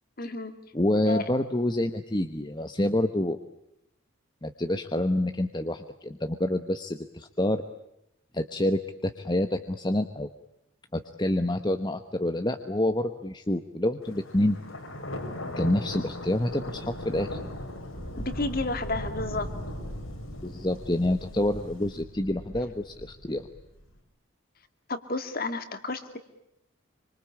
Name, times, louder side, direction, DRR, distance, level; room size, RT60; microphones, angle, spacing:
voice 1, 0.2-0.5 1.1-1.2 18.2-19.5 24.9-26.2, left 2 dB, 45° left, 9 dB, 2.4 m, -31 dB
voice 2, 0.7-3.4 4.4-7.6 8.3-10.3 10.9-14.6 15.6-17.4 20.4-23.5, left 1 dB, 20° left, 8 dB, 1.0 m, -27 dB
Thunder, 14.0-23.9, left 1 dB, 80° left, 5.7 m, -38 dB
26.5 x 25.0 x 8.6 m, 0.81 s
head